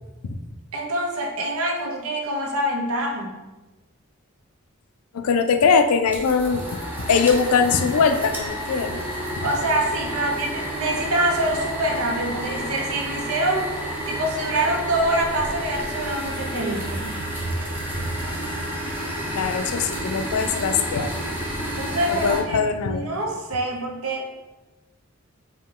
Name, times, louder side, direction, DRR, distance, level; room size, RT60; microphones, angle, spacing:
voice 1, 0.7-3.3 9.4-13.7 14.1-17.2 21.7-24.2, right 1 dB, 85° right, 1 dB, 0.8 m, -25 dB
voice 2, 5.1-6.8 7.1-9.0 19.3-21.1 22.1-23.1, left 5 dB, 85° left, 8 dB, 0.4 m, -21 dB
sound 1, 6.1-22.4, equal, 10° right, 0.7 m, -30 dB
5.1 x 2.2 x 3.7 m, 1.1 s
head